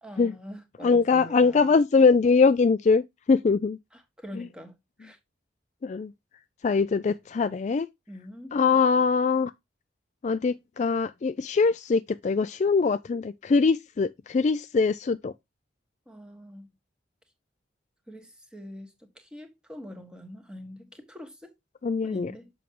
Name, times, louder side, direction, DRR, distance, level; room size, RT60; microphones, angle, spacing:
voice 1, 0.0-1.7 3.9-5.2 8.1-8.6 16.1-16.7 18.1-21.5 22.0-22.5, equal, 5° right, 1.6 m, -44 dB
voice 2, 0.8-3.8 4.3-4.5 5.8-6.1 6.6-7.9 8.5-9.5 10.2-15.3 21.8-22.3, left 4 dB, 35° left, 0.3 m, -22 dB
7.2 x 6.0 x 3.0 m
head